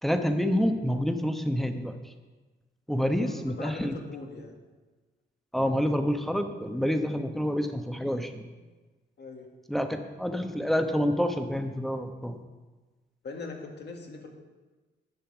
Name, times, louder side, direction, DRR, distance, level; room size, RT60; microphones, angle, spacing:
voice 1, 0.0-2.1 2.9-4.0 5.5-8.5 9.7-12.4, equal, ahead, 6 dB, 1.1 m, -28 dB
voice 2, 3.1-4.5 9.2-9.5 13.2-14.3, left 3 dB, 60° left, 2 dB, 1.9 m, -41 dB
10.5 x 5.6 x 8.0 m, 1.3 s
cardioid pair, 80°, 20 cm